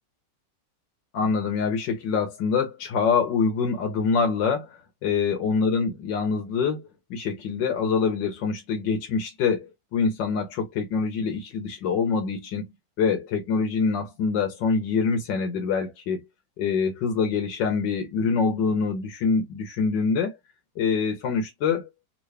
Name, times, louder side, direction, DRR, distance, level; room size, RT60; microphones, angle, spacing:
voice 1, 1.1-16.2 16.6-20.4 20.8-21.9, left 5 dB, 85° left, 1.6 m, -25 dB
3.8 x 2.7 x 3.2 m
omnidirectional pair, 1.9 m